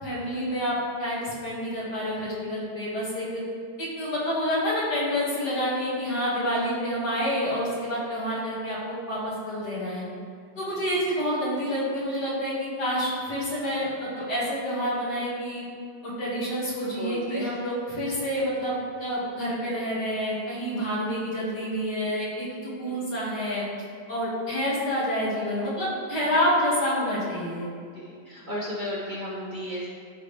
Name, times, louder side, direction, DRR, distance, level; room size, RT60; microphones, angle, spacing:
voice 1, 0.0-3.4 3.8-10.1 10.6-15.6 16.0-23.7 24.1-27.7, equal, 65° left, -7 dB, 2.7 m, -28 dB
voice 2, 17.0-17.6 22.9-23.0 27.9-29.9, equal, 30° right, -7 dB, 1.1 m, -34 dB
13.0 x 4.4 x 3.3 m, 2.2 s
omnidirectional pair, 1.9 m